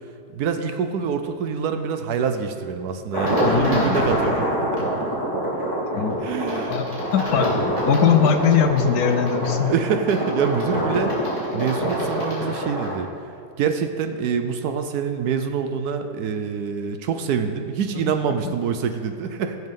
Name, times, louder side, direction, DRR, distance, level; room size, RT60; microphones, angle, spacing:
voice 1, 0.3-4.7 6.2-6.7 9.7-13.1 13.6-19.6, right 6 dB, 70° right, 7 dB, 1.1 m, -25 dB
sound 1, 3.1-13.0, equal, 20° right, 3.0 m, -25 dB
voice 2, 3.5-4.0 5.9-6.2 6.7-9.7 18.0-18.1, left 7 dB, 70° left, 7 dB, 1.0 m, -21 dB
17.5 x 6.3 x 3.7 m, 2.5 s
omnidirectional pair, 1.8 m